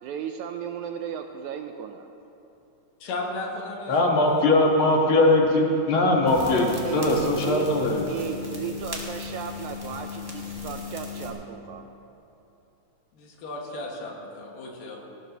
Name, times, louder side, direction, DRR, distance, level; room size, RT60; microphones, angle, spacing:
voice 1, 0.0-2.1 6.4-7.7 8.1-11.9, right 8 dB, 80° right, 6 dB, 1.8 m, -35 dB
voice 2, 3.0-4.3 13.1-15.0, left 2 dB, 80° left, -1 dB, 3.4 m, -35 dB
voice 3, 3.9-8.0, left 2 dB, 50° left, 0 dB, 1.8 m, -21 dB
sound 1, 6.3-11.3, left 4 dB, 10° right, 1.0 m, -36 dB
19.5 x 16.5 x 3.0 m, 2.9 s
omnidirectional pair, 3.8 m